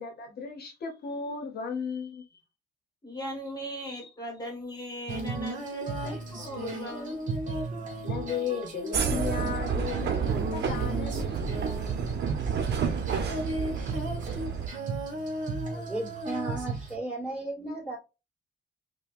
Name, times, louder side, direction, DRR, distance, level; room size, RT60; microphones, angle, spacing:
voice 1, 0.0-2.2 3.9-4.1 8.0-11.6, left 6 dB, 55° left, 0.9 m, -35 dB
voice 2, 3.0-7.3, equal, 20° left, 1.4 m, -38 dB
Female singing, 5.1-17.0, right 2 dB, 40° right, 1.1 m, -35 dB
sound 1, 8.9-14.7, right 6 dB, 60° right, 0.8 m, -30 dB
voice 3, 15.7-18.0, right 2 dB, 5° right, 2.2 m, -35 dB
5.4 x 2.3 x 2.5 m
cardioid pair, 155°, 19 cm